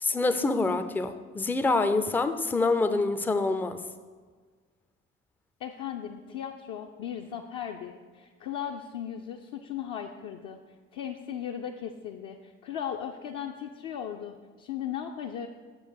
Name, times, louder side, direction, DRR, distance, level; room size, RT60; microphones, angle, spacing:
voice 1, 0.0-3.8, left 3 dB, 5° left, 9 dB, 0.3 m, -26 dB
voice 2, 5.6-10.6 10.9-15.5, left 9 dB, 55° left, 2 dB, 0.5 m, -37 dB
6.9 x 3.9 x 6.3 m, 1.5 s
figure-of-eight pair, 50°, 39 cm